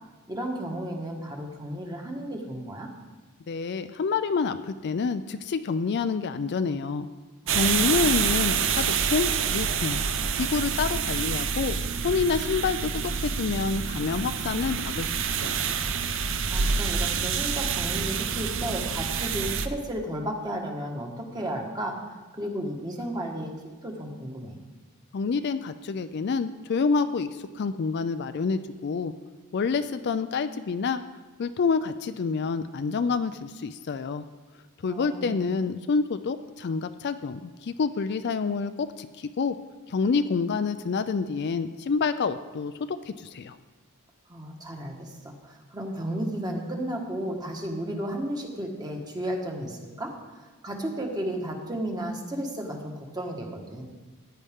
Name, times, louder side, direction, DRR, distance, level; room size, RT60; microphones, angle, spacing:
voice 1, 0.3-2.9 7.4-8.1 16.5-21.9 22.3-23.5 23.8-24.6 34.8-35.4 44.3-53.9, right 1 dB, 20° right, 1 dB, 1.4 m, -33 dB
voice 2, 3.5-7.1 7.5-10.0 10.3-11.8 12.0-15.6 25.1-29.1 29.5-31.0 31.4-34.2 34.8-39.6 39.9-43.6, left 5 dB, 50° left, 11 dB, 0.4 m, -28 dB
sound 1, 7.5-19.7, right 6 dB, 60° right, 0.6 m, -27 dB
15.0 x 9.7 x 3.6 m, 1.3 s
head